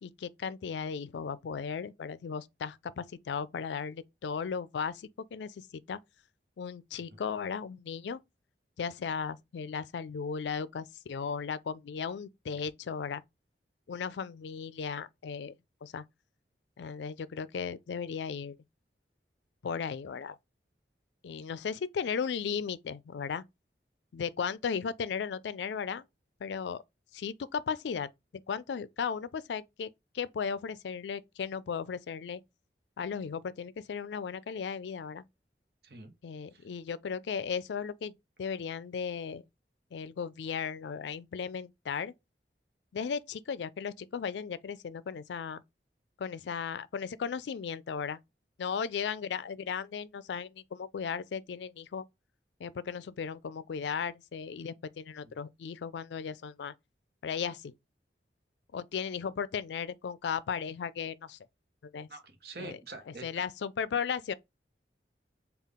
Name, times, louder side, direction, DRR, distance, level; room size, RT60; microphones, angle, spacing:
voice 1, 0.0-6.0 6.6-8.2 8.8-13.2 13.9-15.5 15.8-16.0 16.8-18.6 19.6-20.4 21.2-23.4 24.1-26.0 26.4-26.8 27.1-28.1 28.5-32.4 33.0-35.3 36.2-39.4 39.9-42.1 42.9-45.6 46.2-48.2 48.6-52.0 52.6-56.7 57.2-57.7 58.7-61.4 61.8-62.1 62.6-62.8 63.2-64.3, left 6 dB, 85° left, 0.4 m, -36 dB
voice 2, 62.1-63.5, right 3 dB, 60° right, 0.9 m, -46 dB
3.7 x 2.4 x 3.5 m
head